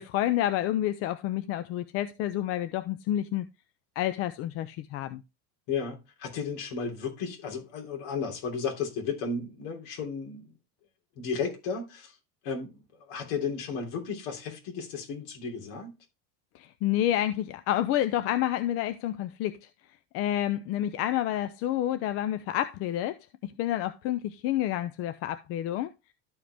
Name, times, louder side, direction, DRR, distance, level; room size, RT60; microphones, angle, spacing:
voice 1, 0.0-3.5 4.0-5.2 16.5-19.6 20.1-23.2 23.4-25.9, left 12 dB, 40° left, 0.5 m, -29 dB
voice 2, 5.7-10.5 11.2-12.1 12.4-12.8 13.1-15.9, left 5 dB, 60° left, 3.3 m, -34 dB
13.0 x 5.0 x 3.4 m
cardioid pair, 175°, 36 cm